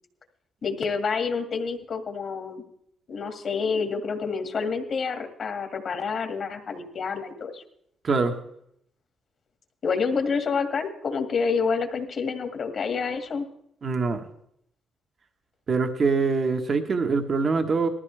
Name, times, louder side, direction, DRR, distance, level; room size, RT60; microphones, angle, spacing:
voice 1, 0.6-2.6 3.1-7.6 9.8-13.5, left 5 dB, 55° left, 5 dB, 2.0 m, -28 dB
voice 2, 13.8-14.2 15.7-17.9, right 4 dB, 45° right, 5 dB, 1.3 m, -24 dB
19.0 x 14.0 x 3.4 m, 0.73 s
cardioid pair, 90°, 0 cm